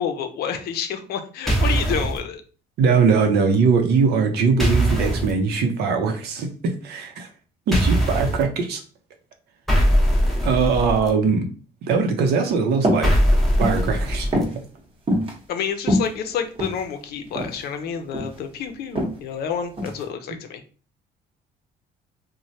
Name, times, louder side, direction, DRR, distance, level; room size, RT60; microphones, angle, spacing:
voice 1, 0.0-2.4 15.5-20.6, left 7 dB, 70° left, 7 dB, 0.5 m, -29 dB
sound 1, 1.5-2.2 4.6-5.3 7.7-8.4 9.7-11.1 13.0-14.4, equal, ahead, 0.8 m, -20 dB
voice 2, 2.8-7.3 7.7-8.8 10.4-11.5 11.8-13.1 13.6-14.3, right 5 dB, 75° right, 5 dB, 0.7 m, -21 dB
sound 2, 12.8-13.1 13.5-13.8 14.3-14.6 15.1-15.3 15.8-16.8 17.4-17.6 17.9-18.4 19.0-19.2 19.8-20.0, equal, 30° right, 1.0 m, -23 dB
3.1 x 2.1 x 2.7 m, 0.38 s
cardioid pair, 110°, 17 cm